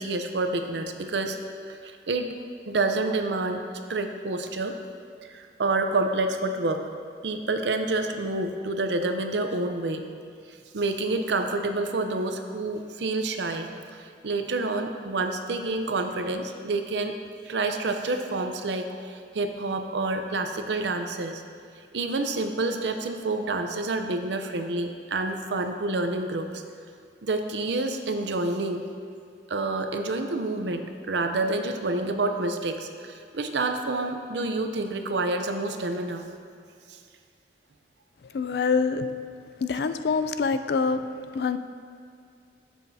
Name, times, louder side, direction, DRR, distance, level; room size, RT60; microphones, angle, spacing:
voice 1, 0.0-1.4 1.7-2.3 2.7-3.6 3.9-4.8 5.2-6.8 7.2-10.1 10.5-17.2 17.4-21.4 21.9-26.6 27.2-28.8 29.5-36.3 36.9-37.0, right 2 dB, 75° right, 6 dB, 0.6 m, -28 dB
voice 2, 38.3-39.1 39.6-41.0 41.3-41.6, left 5 dB, 60° left, 10 dB, 0.4 m, -25 dB
11.5 x 7.5 x 2.7 m, 2.3 s
head